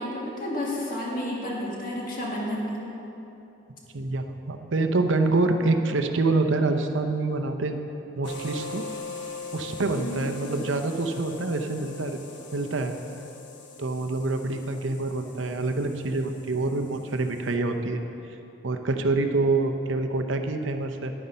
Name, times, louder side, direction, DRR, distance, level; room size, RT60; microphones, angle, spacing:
voice 1, 0.0-2.9 10.0-10.3, left 1 dB, 45° left, -4 dB, 2.1 m, -31 dB
voice 2, 3.9-7.8 8.2-8.9 9.5-12.2 12.5-13.0 13.8-18.0 18.6-21.1, right 3 dB, 75° right, 6 dB, 0.7 m, -26 dB
sound 1, 8.2-17.5, left 3 dB, 65° left, 1.1 m, -42 dB
10.0 x 9.3 x 5.6 m, 2.9 s
head